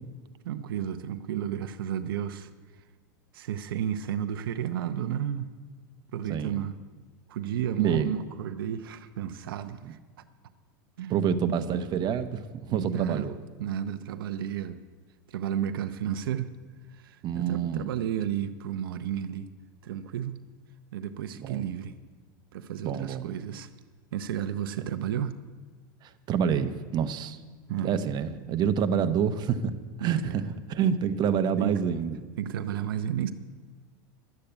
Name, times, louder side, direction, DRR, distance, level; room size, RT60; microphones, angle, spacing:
voice 1, 0.4-2.5 3.3-5.5 6.1-6.7 7.3-10.0 11.0-11.1 12.7-13.3 13.6-14.8 15.3-16.5 16.9-19.5 19.8-20.4 20.9-21.9 22.5-23.7 24.1-25.4 27.7-27.9 30.0-30.4 31.6-31.8 32.4-33.3, right 10 dB, 80° right, 0.7 m, -32 dB
voice 2, 6.3-6.7 7.8-8.1 9.8-9.9 11.1-13.4 17.2-17.9 21.3-21.7 22.8-23.3 24.8-24.9 26.0-27.4 27.7-29.7 30.0-32.2, right 7 dB, 40° right, 0.9 m, -28 dB
12.0 x 8.5 x 8.0 m
hypercardioid pair, 110°, 12 cm